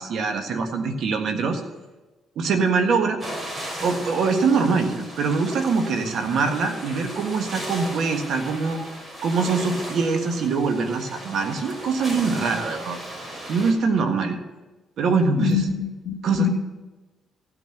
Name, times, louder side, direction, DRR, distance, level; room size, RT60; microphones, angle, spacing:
voice 1, 0.0-1.6 2.3-3.2 3.8-8.8 9.2-13.0 13.5-14.4 15.0-15.7 16.2-16.5, right 4 dB, 70° right, 6 dB, 1.5 m, -23 dB
sound 1, 3.2-13.7, right 1 dB, 30° right, 3.9 m, -36 dB
voice 2, 15.4-16.5, left 8 dB, 60° left, 3 dB, 2.5 m, -25 dB
15.0 x 6.2 x 6.7 m, 1.2 s
cardioid pair, 90°, 0 cm